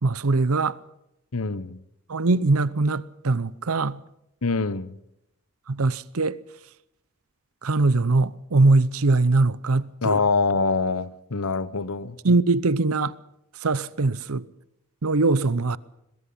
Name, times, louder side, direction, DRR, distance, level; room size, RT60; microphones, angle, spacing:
voice 1, 0.0-0.8 2.1-4.0 5.7-6.4 7.6-10.2 12.2-13.1 13.6-14.4 15.0-15.8, right 3 dB, 85° right, 0.8 m, -21 dB
voice 2, 1.3-1.8 4.4-5.0 10.0-12.2, left 4 dB, 85° left, 1.0 m, -25 dB
22.0 x 21.5 x 5.7 m
head